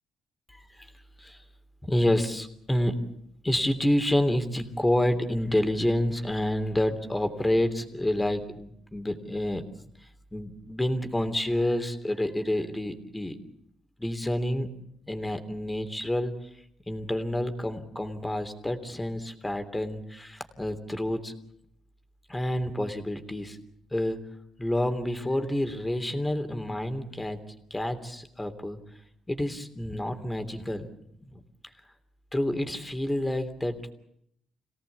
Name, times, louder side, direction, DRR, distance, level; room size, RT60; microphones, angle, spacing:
voice 1, 0.5-0.9 1.2-1.4 1.8-3.0 3.4-9.6 10.3-13.4 14.0-14.7 15.1-16.5 16.9-21.3 22.3-23.6 23.9-24.2 24.6-27.4 27.7-28.8 29.3-30.9 31.3-31.4 32.3-33.9, left 1 dB, 10° left, 8 dB, 3.2 m, -28 dB
27.5 x 17.5 x 8.4 m, 0.75 s
cardioid pair, 90°, 0 cm